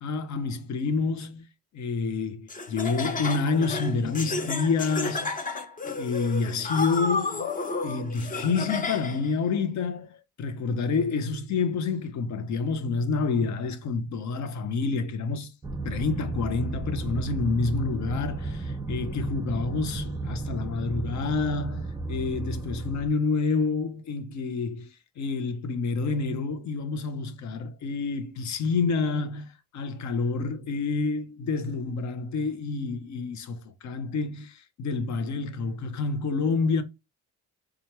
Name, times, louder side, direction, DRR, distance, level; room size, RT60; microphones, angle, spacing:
voice 1, 0.0-1.4 1.7-5.4 5.9-7.5 7.8-15.5 15.8-24.9 25.2-36.8, left 4 dB, 65° left, 0.8 m, -28 dB
Laughter, 2.5-9.3, left 3 dB, 25° left, 0.7 m, -32 dB
sound 1, 15.6-23.1, right 3 dB, 15° right, 0.5 m, -33 dB
4.3 x 2.4 x 3.0 m
cardioid pair, 90°, 30 cm